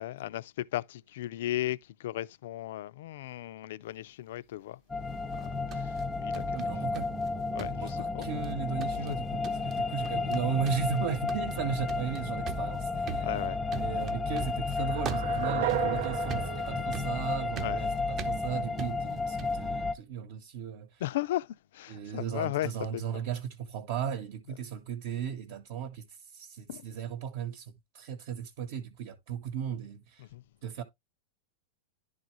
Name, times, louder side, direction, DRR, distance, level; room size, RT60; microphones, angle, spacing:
voice 1, 0.0-4.8 5.1-6.6 7.5-8.3 9.1-9.2 13.2-13.6 17.6-18.0 21.0-23.2 26.7-26.8 30.2-30.4, left 14 dB, 65° left, 0.4 m, -36 dB
sound 1, 4.9-19.9, left 3 dB, 10° left, 0.5 m, -32 dB
sound 2, 5.3-7.3 7.6-8.5 8.8-9.2 9.4-9.8 10.0-10.4 10.7-19.7, right 6 dB, 25° right, 0.7 m, -42 dB
voice 2, 6.5-7.1 7.8-13.3 13.8-21.0 21.9-30.3 30.6-30.8, right 7 dB, 55° right, 1.0 m, -36 dB
sound 3, 14.8-17.9, right 13 dB, 75° right, 0.7 m, -35 dB
11.0 x 4.0 x 3.0 m
supercardioid pair, 160°, 0 cm